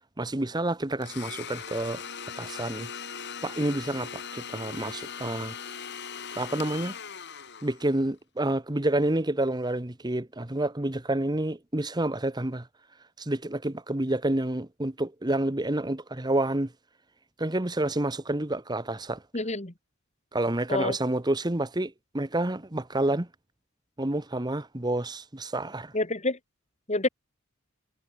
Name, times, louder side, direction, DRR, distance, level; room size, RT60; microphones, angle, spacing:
voice 1, 0.2-2.9 3.2-5.5 6.4-7.0 7.6-12.7 13.2-16.7 17.4-19.2 20.3-23.3 24.0-25.9, right 1 dB, 20° right, 1.1 m, -29 dB
Domestic sounds home sounds, 1.0-8.1, left 7 dB, 50° left, 5.2 m, -39 dB
voice 2, 19.3-19.7 20.7-20.9 25.9-26.4 26.9-27.1, left 2 dB, 30° left, 2.2 m, -27 dB
head